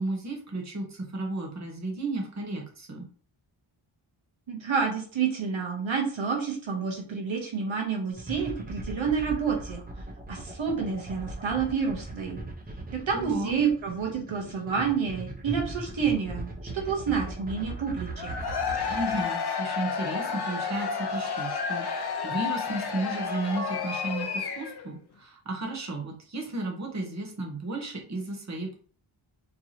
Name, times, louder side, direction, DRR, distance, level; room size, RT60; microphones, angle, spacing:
voice 1, 0.0-3.1 13.1-13.6 18.9-28.7, right 2 dB, 35° right, 0 dB, 1.1 m, -34 dB
voice 2, 4.5-9.8 10.3-12.4 12.9-18.3, right 6 dB, 70° right, 1 dB, 1.0 m, -29 dB
sound 1, 8.2-19.2, right 2 dB, 20° right, 0.8 m, -39 dB
Cheering / Crowd, 18.1-24.9, left 6 dB, 55° left, 0.7 m, -31 dB
4.5 x 3.1 x 2.8 m, 0.43 s
wide cardioid pair, 115°, 48 cm